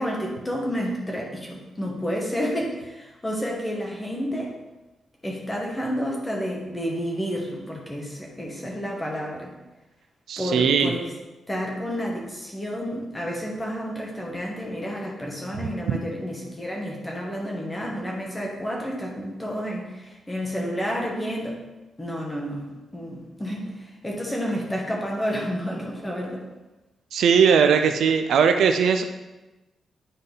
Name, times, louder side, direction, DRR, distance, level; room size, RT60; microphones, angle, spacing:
voice 1, 0.0-4.5 5.2-9.5 10.4-11.1 11.5-21.6 22.0-26.4, equal, 10° left, -1 dB, 1.3 m, -30 dB
voice 2, 10.3-10.9 15.9-16.0 27.1-29.0, right 6 dB, 75° right, 7 dB, 0.5 m, -19 dB
9.5 x 4.1 x 3.9 m, 1.1 s
wide cardioid pair, 160°, 0 cm